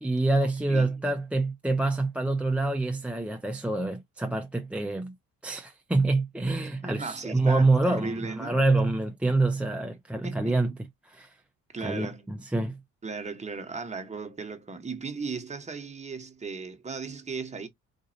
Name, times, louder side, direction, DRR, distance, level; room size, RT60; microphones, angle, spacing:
voice 1, 0.0-5.1 5.4-11.3 11.8-12.8, right 2 dB, 5° right, 0.4 m, -26 dB
voice 2, 6.8-8.6 10.2-10.5 11.7-12.3 13.0-17.7, right 4 dB, 20° right, 1.0 m, -36 dB
4.2 x 2.5 x 2.6 m
cardioid pair, 90°, 30 cm